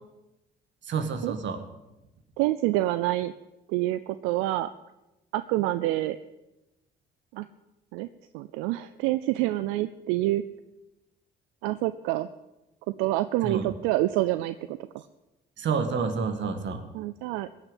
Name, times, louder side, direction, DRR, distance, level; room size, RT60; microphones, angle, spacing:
voice 1, 0.9-1.6 13.4-13.7 15.6-16.8, right 5 dB, 60° right, 7 dB, 2.0 m, -29 dB
voice 2, 2.4-3.3 3.7-4.7 5.3-6.2 7.3-7.5 7.9-8.1 8.3-10.4 11.6-12.3 13.0-15.0 16.9-17.5, right 16 dB, 85° right, 13 dB, 0.5 m, -27 dB
17.0 x 6.7 x 9.1 m, 0.99 s
supercardioid pair, 60°, 21 cm